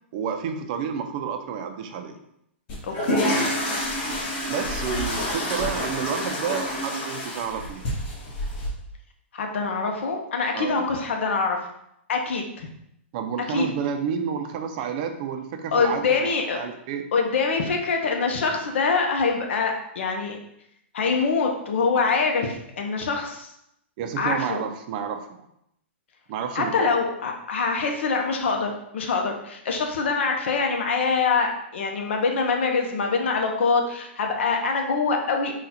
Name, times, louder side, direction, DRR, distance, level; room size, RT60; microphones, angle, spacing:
voice 1, 0.1-2.2 4.5-7.9 10.5-10.8 13.1-17.0 24.0-25.5 26.3-26.9, right 7 dB, 40° right, 6 dB, 0.5 m, -30 dB
sound 1, 2.7-8.7, left 1 dB, 35° left, 1.5 m, -28 dB
voice 2, 2.8-3.4 9.3-11.6 12.1-12.7 13.5-13.7 15.7-16.6 17.1-20.4 20.9-23.5 24.2-24.6 26.5-35.5, left 4 dB, 70° left, 3 dB, 0.8 m, -24 dB
3.9 x 2.4 x 4.2 m, 0.77 s
hypercardioid pair, 150°, 7 cm